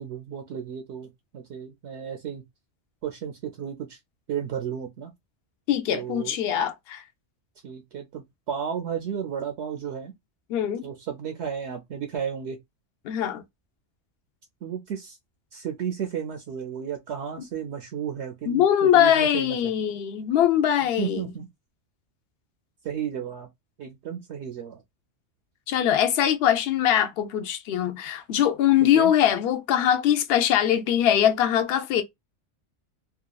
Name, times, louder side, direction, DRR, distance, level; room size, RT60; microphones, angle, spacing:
voice 1, 0.0-2.4 3.0-4.0 4.3-5.1 5.9-6.4 7.6-10.1 10.8-12.6 14.6-15.2 15.5-19.7 21.0-21.5 22.8-23.5 23.8-24.8 29.0-29.1, right 8 dB, 70° right, 0.8 m, -33 dB
voice 2, 5.7-7.0 10.5-10.8 13.0-13.4 18.5-21.3 25.7-32.0, left 10 dB, 60° left, 0.7 m, -22 dB
2.8 x 2.2 x 2.3 m
omnidirectional pair, 1.3 m